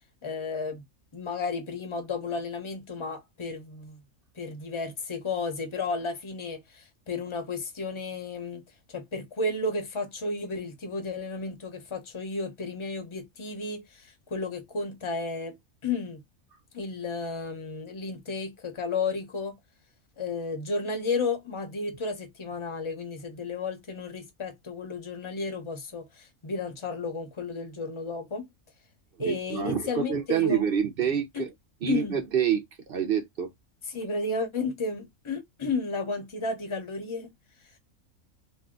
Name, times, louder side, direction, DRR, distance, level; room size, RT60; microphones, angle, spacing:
voice 1, 0.2-0.8 1.1-4.0 4.4-8.6 8.9-15.6 15.8-16.2 16.7-19.6 20.2-28.5 29.2-30.6 31.3-31.5 31.9-32.2 33.9-37.3, left 3 dB, 25° left, 0.7 m, -33 dB
voice 2, 29.2-31.5 31.8-33.5, right 8 dB, 55° right, 0.6 m, -27 dB
2.7 x 2.2 x 3.6 m
omnidirectional pair, 1.5 m